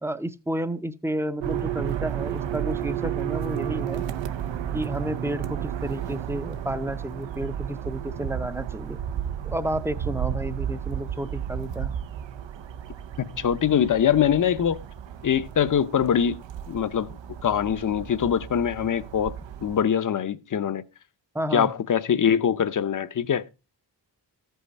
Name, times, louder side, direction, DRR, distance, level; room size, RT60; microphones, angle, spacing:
voice 1, 0.0-4.1 4.7-9.0 9.4-11.9 21.3-21.7, right 1 dB, 5° right, 0.5 m, -31 dB
sound 1, 1.4-19.8, right 10 dB, 85° right, 0.7 m, -33 dB
voice 2, 13.2-14.8 15.2-16.4 16.7-17.1 17.4-20.8 21.5-23.4, left 8 dB, 45° left, 0.6 m, -23 dB
14.5 x 5.6 x 4.0 m
wide cardioid pair, 165°, 43 cm